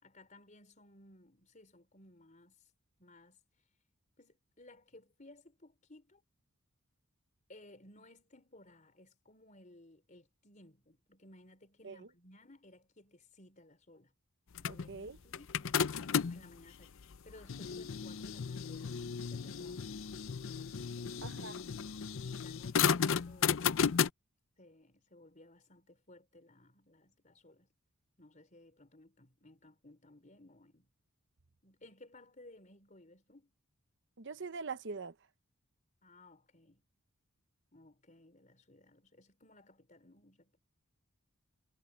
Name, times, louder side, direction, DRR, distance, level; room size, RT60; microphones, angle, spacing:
voice 1, 0.0-2.7 3.0-3.4 4.2-6.2 7.5-14.1 14.6-15.5 16.1-16.9 17.2-19.9 20.9-21.3 22.2-24.1 24.6-27.7 28.2-30.9 31.6-33.5 36.0-36.8 37.7-40.6, left 1 dB, 35° left, 4.4 m, -59 dB
sound 1, 14.6-16.5 17.1-24.1, left 7 dB, 60° left, 0.5 m, -34 dB
voice 2, 14.7-15.2 21.2-21.6 34.2-35.1, right 4 dB, 55° right, 0.9 m, -43 dB
head